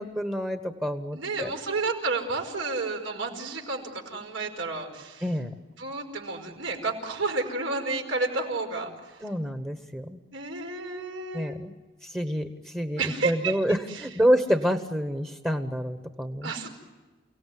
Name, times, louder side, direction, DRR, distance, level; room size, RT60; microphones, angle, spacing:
voice 1, 0.0-1.5 5.2-5.5 9.2-10.2 11.3-11.7 12.0-16.5, equal, 10° right, 7 dB, 1.2 m, -28 dB
voice 2, 1.1-5.3 5.8-9.2 10.3-11.6 13.0-13.6 13.9-14.0 16.4-16.7, right 3 dB, 85° right, 2 dB, 5.3 m, -31 dB
29.5 x 18.0 x 9.4 m, 1.3 s
head